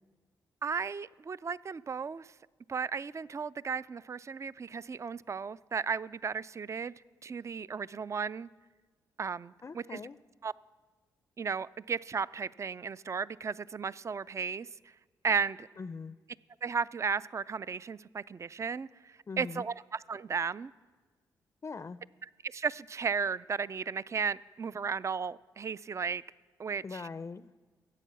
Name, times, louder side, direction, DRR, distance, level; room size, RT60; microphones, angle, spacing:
voice 1, 0.6-2.3 2.7-6.9 7.2-8.5 9.2-10.0 10.4-10.5 11.4-14.7 15.2-15.7 16.6-20.7 22.4-26.2 26.6-27.1, right 5 dB, 35° right, 20 dB, 0.4 m, -35 dB
voice 2, 9.6-10.2 15.8-16.2 19.3-19.6 21.6-22.0 26.8-27.5, left 4 dB, 35° left, 14 dB, 0.4 m, -41 dB
14.0 x 8.3 x 6.9 m, 1.4 s
supercardioid pair, 50°, 8 cm